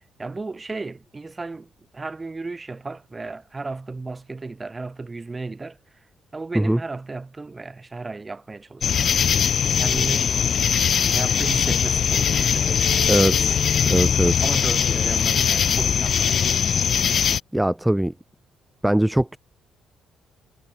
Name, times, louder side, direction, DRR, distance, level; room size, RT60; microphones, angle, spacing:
voice 1, 0.0-5.8 6.3-9.1 9.7-10.3 11.1-13.1 14.4-16.6, right 3 dB, 25° right, 2.7 m, -34 dB
sound 1, 8.8-17.4, left 8 dB, 55° left, 0.4 m, -21 dB
voice 2, 13.1-13.6 13.9-14.4 17.5-18.1 18.8-19.4, right 1 dB, 5° right, 0.5 m, -21 dB
cardioid pair, 90°, 0 cm